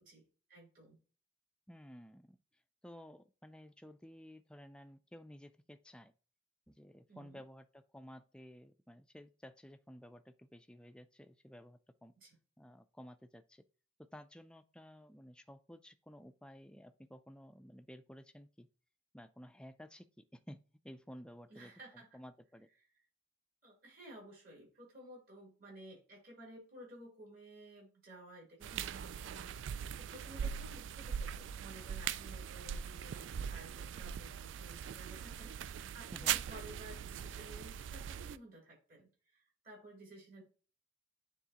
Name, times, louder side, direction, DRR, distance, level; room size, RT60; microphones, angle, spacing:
voice 1, 0.1-1.0 7.1-7.4 12.2-12.4 21.5-22.2 23.6-40.4, right 1 dB, 45° right, 3.7 m, -55 dB
voice 2, 1.7-6.1 6.7-12.1 12.6-13.6 14.0-18.7 19.1-22.7 36.1-36.4, equal, 5° left, 0.4 m, -54 dB
sound 1, 28.6-38.4, right 8 dB, 70° right, 0.3 m, -41 dB
9.4 x 3.7 x 2.9 m
head